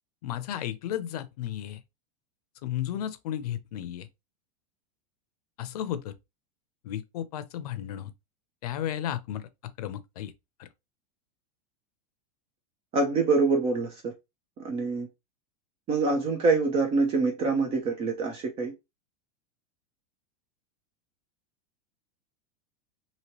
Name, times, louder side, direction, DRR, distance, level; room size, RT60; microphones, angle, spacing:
voice 1, 0.2-1.8 2.6-4.1 5.6-6.1 6.8-8.1 8.6-9.5 9.8-10.3 10.6-10.7, left 11 dB, 80° left, 0.6 m, -33 dB
voice 2, 12.9-14.1 14.6-15.1 15.9-18.7, right 3 dB, 30° right, 0.7 m, -25 dB
3.0 x 2.8 x 2.9 m
supercardioid pair, 150°, 19 cm